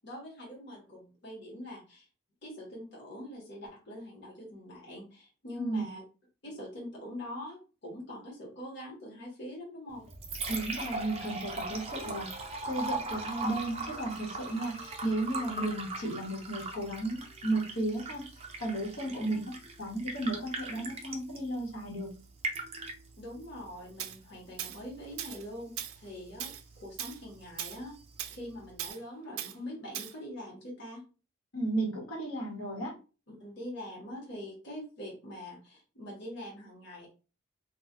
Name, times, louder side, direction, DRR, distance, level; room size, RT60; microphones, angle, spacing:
voice 1, 0.0-2.1 2.4-6.0 6.4-10.0 19.0-19.4 23.2-27.9 28.3-31.0 33.3-37.1, left 1 dB, 55° left, -3 dB, 1.1 m, -44 dB
Liquid, 9.9-28.9, right 3 dB, 30° right, 0.5 m, -41 dB
voice 2, 10.5-18.2 18.6-19.5 19.8-22.2 31.5-32.9, right 2 dB, 85° left, -3 dB, 1.2 m, -34 dB
Tools, 24.0-24.2 24.6-24.8 25.2-25.4 25.8-26.0 26.4-26.6 27.0-27.2 27.6-27.8 28.2-28.4 28.8-29.0 29.4-29.5 29.9-30.1, right 11 dB, 90° right, 0.3 m, -38 dB
2.4 x 2.2 x 3.7 m, 0.34 s
head